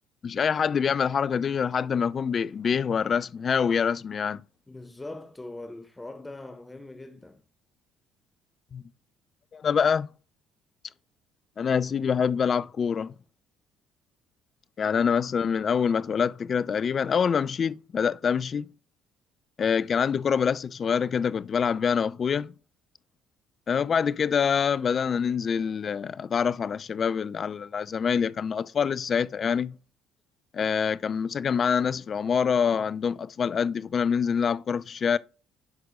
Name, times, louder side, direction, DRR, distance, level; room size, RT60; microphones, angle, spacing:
voice 1, 0.2-4.4 8.7-8.8 9.5-10.1 11.6-13.1 14.8-18.7 19.6-22.5 23.7-29.8 30.5-35.2, left 6 dB, 45° left, 0.5 m, -25 dB
voice 2, 4.7-7.4, left 2 dB, 15° left, 1.0 m, -41 dB
9.6 x 6.1 x 3.7 m
hypercardioid pair, 65°, 0 cm